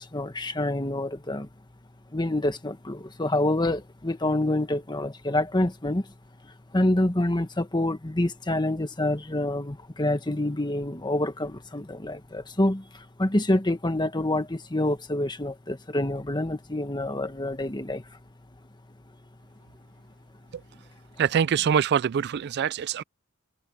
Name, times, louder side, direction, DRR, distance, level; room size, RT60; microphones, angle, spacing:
voice 1, 0.0-1.5 2.1-6.1 6.7-18.0, left 1 dB, 20° left, 1.4 m, -27 dB
voice 2, 21.2-23.0, right 7 dB, 50° right, 0.3 m, -24 dB
head